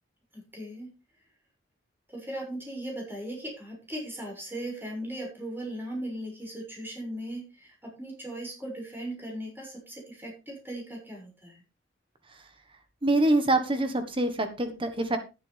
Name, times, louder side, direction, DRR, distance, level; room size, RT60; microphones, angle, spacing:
voice 1, 0.3-0.9 2.1-11.6, right 1 dB, 10° right, -1 dB, 6.6 m, -38 dB
voice 2, 13.0-15.2, right 2 dB, 25° right, 8 dB, 1.5 m, -25 dB
12.0 x 11.0 x 3.5 m, 0.28 s
head